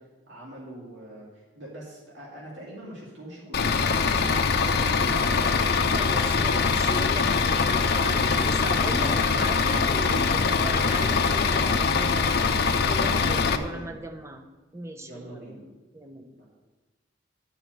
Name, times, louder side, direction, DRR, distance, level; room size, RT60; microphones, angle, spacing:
voice 1, 0.0-5.6 8.2-8.4 10.5-10.8 13.3-14.0 15.0-15.6 16.4-16.5, right 1 dB, 75° right, -4 dB, 2.3 m, -42 dB
Bus / Idling, 3.5-13.6, left 5 dB, 55° left, 0.7 m, -23 dB
voice 2, 5.9-12.6 12.9-14.5 14.7-15.6 15.9-16.4, right 1 dB, 15° right, 4 dB, 0.7 m, -37 dB
10.5 x 5.0 x 7.7 m, 1.2 s
head